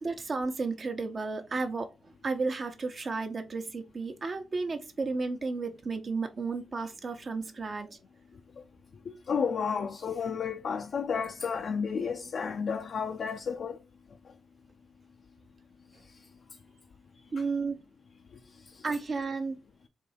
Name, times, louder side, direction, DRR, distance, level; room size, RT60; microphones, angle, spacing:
voice 1, 0.0-8.0 17.3-17.8 18.8-19.6, right 4 dB, 50° right, 1.0 m, -33 dB
voice 2, 9.3-13.8, left 6 dB, 65° left, 0.5 m, -31 dB
3.7 x 2.8 x 4.2 m
supercardioid pair, 45°, 0 cm